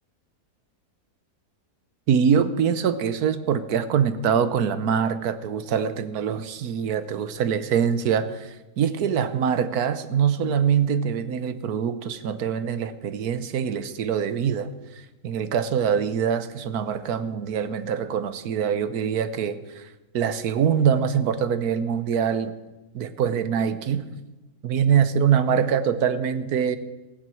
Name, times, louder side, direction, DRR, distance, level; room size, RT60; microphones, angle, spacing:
voice 1, 2.1-14.7 15.2-19.9 20.1-22.5 22.9-24.0 24.6-26.8, right 7 dB, 75° right, 13 dB, 1.3 m, -24 dB
16.0 x 7.7 x 7.7 m, 1.1 s
omnidirectional pair, 1.7 m